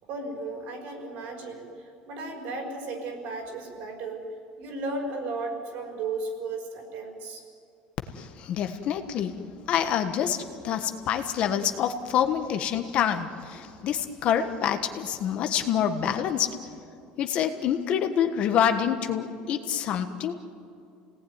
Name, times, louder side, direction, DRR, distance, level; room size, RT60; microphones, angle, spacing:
voice 1, 0.0-4.2 4.6-7.4, right 3 dB, 55° right, 2 dB, 5.3 m, -35 dB
voice 2, 8.1-9.3 9.7-16.5 17.2-20.3, left 9 dB, 40° left, 7 dB, 1.3 m, -26 dB
29.5 x 18.5 x 9.6 m, 2.5 s
cardioid pair, 175°, 3 cm